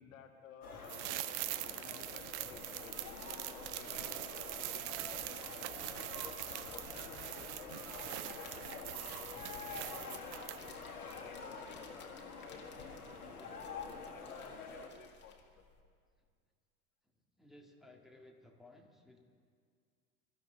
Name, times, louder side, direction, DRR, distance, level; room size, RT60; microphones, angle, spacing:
voice 1, 0.0-5.9 6.4-12.6 13.3-15.7, left 7 dB, 60° left, 4 dB, 1.6 m, -57 dB
sound 1, 0.6-14.9, left 4 dB, 80° left, 2.0 m, -47 dB
sound 2, 0.8-10.8 11.1-11.2, right 15 dB, 50° right, 0.7 m, -43 dB
sound 3, 2.2-15.8, left 4 dB, 25° left, 2.1 m, -59 dB
voice 2, 13.1-13.4 17.4-19.2, left 2 dB, ahead, -1 dB, 1.9 m, -59 dB
22.5 x 13.5 x 3.9 m, 2.1 s
figure-of-eight pair, 80°, 44 cm